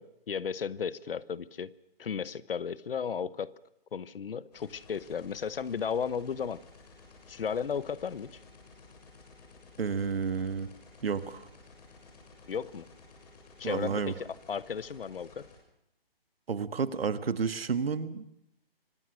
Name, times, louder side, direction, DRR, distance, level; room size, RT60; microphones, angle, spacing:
voice 1, 0.0-1.7 2.0-3.5 3.9-6.6 7.3-8.4 12.5-12.9 13.6-15.5, left 7 dB, 65° left, 19 dB, 1.0 m, -34 dB
sound 1, 4.5-15.6, left 3 dB, 40° left, 7.1 m, -55 dB
voice 2, 9.8-10.7 11.0-11.5 13.6-14.1 16.5-18.2, right 5 dB, 75° right, 12 dB, 1.7 m, -31 dB
25.0 x 18.5 x 6.4 m, 0.78 s
hypercardioid pair, 160°, 30 cm